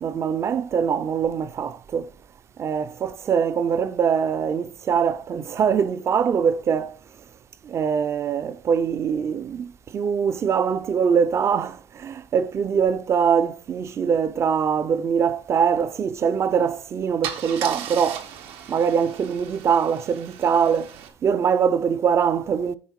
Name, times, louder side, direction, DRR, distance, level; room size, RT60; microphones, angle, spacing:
voice 1, 0.0-2.1 2.6-7.0 7.6-18.3 18.7-22.8, right 7 dB, 30° right, 0.4 m, -23 dB
Car / Engine starting / Idling, 16.5-16.7 17.2-21.1, right 9 dB, 85° right, 1.4 m, -37 dB
9.2 x 5.0 x 4.6 m
cardioid pair, 165°, 9 cm